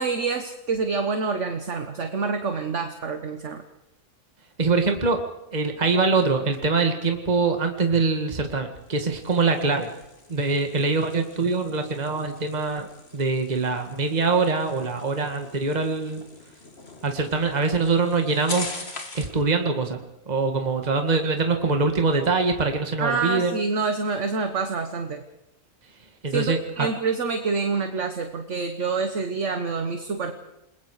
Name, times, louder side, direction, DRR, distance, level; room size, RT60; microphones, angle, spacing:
voice 1, 0.0-3.6 23.0-25.2 26.3-30.3, right 4 dB, 60° right, 7 dB, 1.6 m, -27 dB
voice 2, 4.6-5.2 5.5-9.9 10.3-12.9 13.1-16.2 17.0-18.7 19.1-20.0 20.3-23.6 26.2-26.9, right 4 dB, 30° right, 5 dB, 2.0 m, -23 dB
sound 1, 8.7-19.4, left 2 dB, 45° left, 2.8 m, -42 dB
29.0 x 21.0 x 4.9 m, 0.91 s
omnidirectional pair, 1.5 m